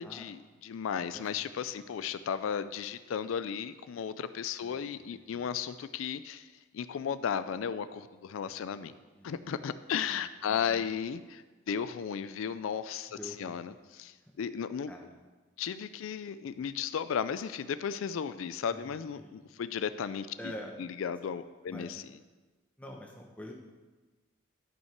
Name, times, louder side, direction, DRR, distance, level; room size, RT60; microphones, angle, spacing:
voice 1, 0.0-6.5 6.7-8.9 9.2-14.9 15.6-20.3 20.8-22.0, left 7 dB, 85° left, 13 dB, 0.4 m, -35 dB
voice 2, 4.6-5.5 8.4-9.4 10.1-10.2 10.4-10.8 13.2-13.6 14.9-15.1 18.7-19.4 20.4-20.7 21.2-21.3 21.7-21.9 22.8-23.5, equal, 5° left, 0 dB, 1.0 m, -47 dB
11.0 x 5.6 x 4.6 m, 1.3 s
head